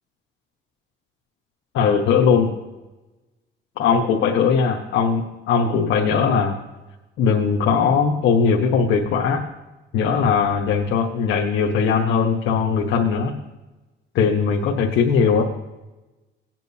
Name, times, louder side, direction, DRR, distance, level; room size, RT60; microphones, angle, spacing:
voice 1, 1.7-2.5 3.8-6.6 7.2-9.4 9.9-13.3 14.1-15.4, left 6 dB, 85° left, -1 dB, 1.2 m, -19 dB
19.0 x 9.0 x 2.8 m, 1.1 s
cardioid pair, 90°, 20 cm